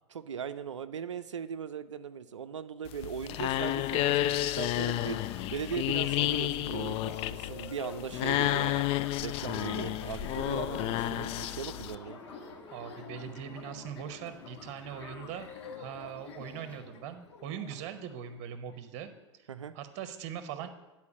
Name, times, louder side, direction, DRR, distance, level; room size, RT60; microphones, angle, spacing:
voice 1, 0.1-5.2 5.5-8.8 9.2-12.2 19.5-19.7, right 7 dB, 85° right, 11 dB, 0.4 m, -39 dB
sound 1, 2.9-12.0, left 14 dB, 40° left, 0.4 m, -31 dB
sound 2, 4.2-18.8, left 6 dB, 70° left, 1.2 m, -48 dB
sound 3, 10.3-16.8, equal, 10° left, 1.4 m, -53 dB
voice 2, 12.7-15.5 15.8-19.5 19.7-20.7, right 9 dB, 50° right, 9 dB, 0.9 m, -41 dB
9.6 x 4.3 x 7.3 m, 1.1 s
figure-of-eight pair, 90°, 15 cm